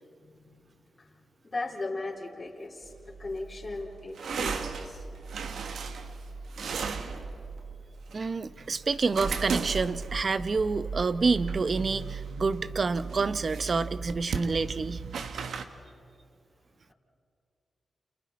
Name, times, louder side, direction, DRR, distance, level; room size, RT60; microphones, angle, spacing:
voice 1, 0.2-5.1, left 2 dB, 35° left, -3 dB, 3.4 m, -38 dB
sound 1, 2.8-15.6, right 5 dB, 80° right, 1.2 m, -36 dB
voice 2, 8.1-15.0, right 4 dB, 50° right, 14 dB, 0.7 m, -28 dB
30.0 x 28.5 x 4.2 m, 2.5 s
cardioid pair, 60°, 0 cm